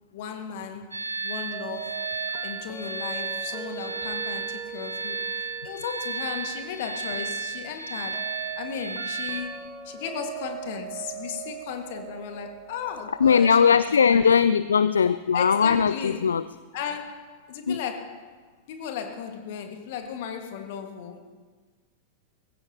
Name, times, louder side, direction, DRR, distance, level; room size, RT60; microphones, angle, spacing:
voice 1, 0.1-2.2 2.4-13.6 14.1-14.3 15.3-16.3 16.7-18.4 18.7-21.2, left 7 dB, 50° left, 1.9 m, -36 dB
sound 1, 0.9-9.4, right 5 dB, 80° right, 1.6 m, -33 dB
sound 2, 1.5-14.4, right 8 dB, 25° right, 2.0 m, -41 dB
voice 2, 13.2-16.4 17.7-17.8, left 6 dB, 70° left, 0.3 m, -19 dB
20.5 x 16.0 x 3.0 m
figure-of-eight pair, 90°, 0 cm